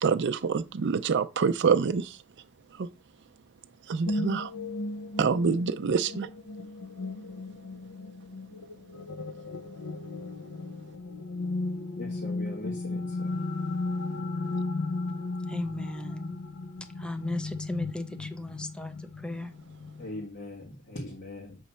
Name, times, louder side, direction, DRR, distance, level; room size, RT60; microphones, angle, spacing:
voice 1, 0.0-2.2 2.8-2.9 3.9-4.5 5.2-6.3, right 5 dB, 55° right, 0.4 m, -26 dB
sound 1, 4.1-20.2, left 2 dB, 75° left, 0.7 m, -35 dB
voice 2, 12.0-13.3 20.0-21.6, left 1 dB, 55° left, 1.4 m, -40 dB
voice 3, 15.5-16.3 17.0-18.9 19.2-19.5, left 1 dB, 5° left, 0.5 m, -35 dB
8.0 x 3.1 x 5.5 m
head